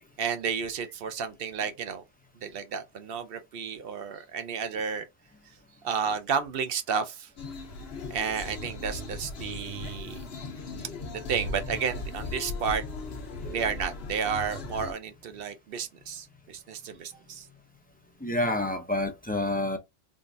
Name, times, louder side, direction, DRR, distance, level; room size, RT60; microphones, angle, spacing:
voice 1, 0.2-2.0 2.4-5.1 5.8-7.3 8.1-10.2 11.1-12.8 13.5-17.5, right 6 dB, 70° right, 0.8 m, -32 dB
sound 1, 7.4-14.9, left 2 dB, 75° left, 1.1 m, -38 dB
voice 2, 13.4-13.7 18.2-19.8, left 1 dB, 15° left, 0.4 m, -29 dB
3.7 x 2.4 x 2.6 m
omnidirectional pair, 1.0 m